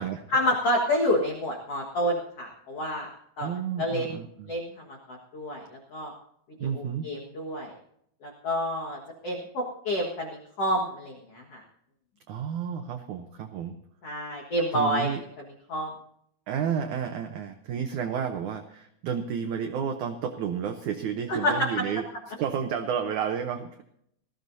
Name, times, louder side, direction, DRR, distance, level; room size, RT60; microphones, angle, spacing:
voice 1, 0.3-3.1 3.4-3.5 3.8-4.1 4.5-4.7 5.1-5.6 5.9-6.1 6.6-7.7 8.2-11.6 14.0-15.1 15.7-15.9 21.3-21.7, equal, 50° left, -1 dB, 2.1 m, -28 dB
voice 2, 3.4-4.5 6.6-7.1 12.3-13.7 14.7-15.2 16.5-22.1 22.4-23.8, right 7 dB, 80° right, 6 dB, 1.7 m, -31 dB
19.5 x 15.0 x 2.7 m, 0.72 s
omnidirectional pair, 4.6 m